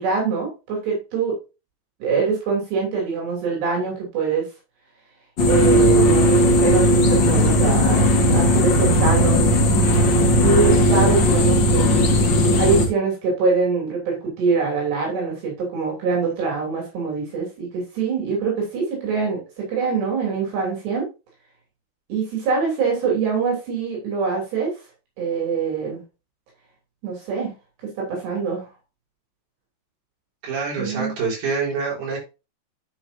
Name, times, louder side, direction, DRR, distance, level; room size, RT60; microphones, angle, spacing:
voice 1, 0.0-1.4 2.0-4.5 5.5-8.0 8.3-11.9 12.2-21.1 22.1-24.7 25.2-26.0 27.0-27.5 28.0-28.7 30.8-31.1, right 5 dB, 75° right, -2 dB, 5.2 m, -24 dB
sound 1, 5.4-12.9, equal, 75° left, 1.0 m, -16 dB
voice 2, 30.4-32.2, right 4 dB, 45° right, -4 dB, 5.6 m, -26 dB
10.5 x 6.5 x 2.7 m, 0.29 s
omnidirectional pair, 4.9 m